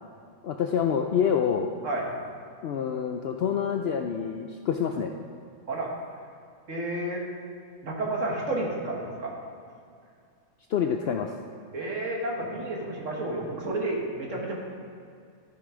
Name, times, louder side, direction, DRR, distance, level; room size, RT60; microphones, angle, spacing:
voice 1, 0.4-1.7 2.6-5.1 10.7-11.3, left 7 dB, 65° left, 4 dB, 0.6 m, -27 dB
voice 2, 6.7-7.2 7.8-9.3 11.7-14.5, right 2 dB, 60° right, -1 dB, 1.8 m, -31 dB
13.5 x 5.6 x 5.0 m, 2.3 s
omnidirectional pair, 1.5 m